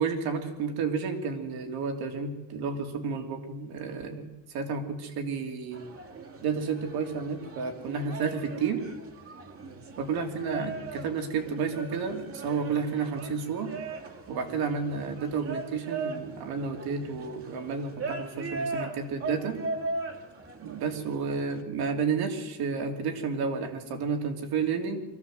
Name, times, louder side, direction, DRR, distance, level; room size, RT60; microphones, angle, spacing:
voice 1, 0.0-5.8 6.4-8.9 10.0-13.8 14.3-19.6 20.6-25.0, right 5 dB, 70° right, 4 dB, 3.3 m, -31 dB
sound 1, 5.7-21.6, right 3 dB, 35° right, 2.2 m, -39 dB
23.5 x 15.5 x 7.9 m, 1.0 s
cardioid pair, 170°, 38 cm